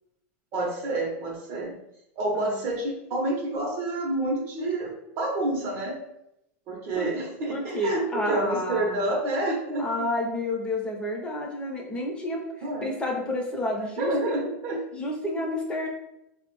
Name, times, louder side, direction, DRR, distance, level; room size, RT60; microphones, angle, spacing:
voice 1, 0.5-1.8 2.2-6.0 6.7-10.1 12.6-13.0 14.0-14.8, right 2 dB, 45° right, 0 dB, 0.7 m, -28 dB
voice 2, 7.5-9.1 9.8-12.4 12.8-14.4 14.9-15.9, left 1 dB, 15° left, -1 dB, 0.7 m, -30 dB
3.9 x 2.0 x 3.0 m, 0.83 s
supercardioid pair, 140°, 7 cm